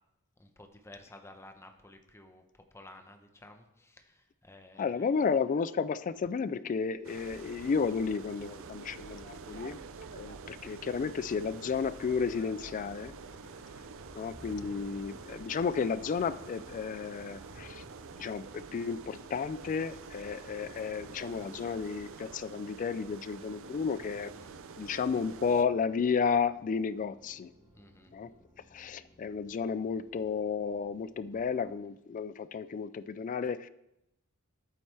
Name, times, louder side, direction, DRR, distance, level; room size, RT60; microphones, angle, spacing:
voice 1, 0.4-2.4 2.7-5.1 9.3-9.7 13.2-13.6 24.2-24.6 27.7-28.1, left 2 dB, 10° left, 5 dB, 0.9 m, -54 dB
voice 2, 4.8-9.8 10.2-13.1 14.1-17.8 18.2-24.3 24.8-27.5 28.1-28.3 28.7-33.7, left 5 dB, 35° left, 15 dB, 0.3 m, -32 dB
sound 1, 7.0-25.6, right 5 dB, 65° right, 0.5 m, -48 dB
sound 2, 7.1-22.1, right 1 dB, 85° right, 4.0 m, -55 dB
sound 3, 13.2-31.7, right 1 dB, 25° right, 3.2 m, -62 dB
11.5 x 8.7 x 3.3 m, 0.88 s
head